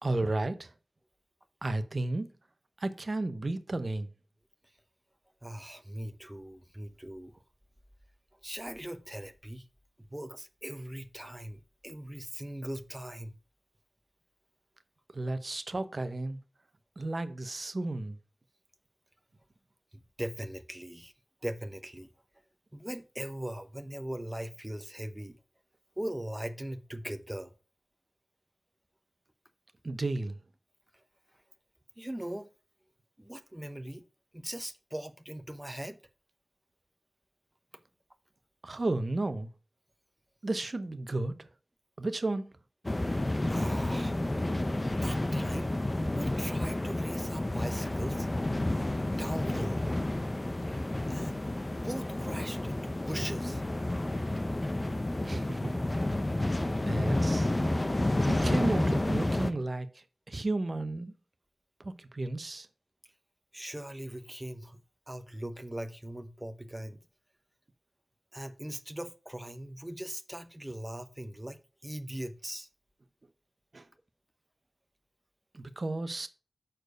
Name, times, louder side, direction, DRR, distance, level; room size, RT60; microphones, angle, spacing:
voice 1, 0.0-0.7 1.6-2.3 2.8-4.1 15.1-16.4 17.0-18.2 29.8-30.4 38.6-39.5 40.4-41.5 42.0-42.4 55.2-55.7 56.9-57.5 58.3-61.1 61.8-62.7 73.7-73.9 75.5-76.3, right 2 dB, 50° right, 0.8 m, -33 dB
voice 2, 5.4-7.4 8.4-9.7 10.1-13.4 20.2-21.1 21.4-22.1 22.7-25.4 26.0-27.5 30.9-31.0 32.0-32.5 33.2-34.0 34.3-36.0 43.5-44.2 45.0-45.7 46.1-48.3 49.2-49.9 51.1-51.4 51.8-53.6 63.5-64.8 65.1-67.0 68.3-72.7, right 1 dB, 10° right, 0.8 m, -40 dB
sound 1, 42.8-59.5, left 1 dB, 30° left, 0.7 m, -30 dB
6.7 x 4.5 x 5.0 m
cardioid pair, 45°, 0 cm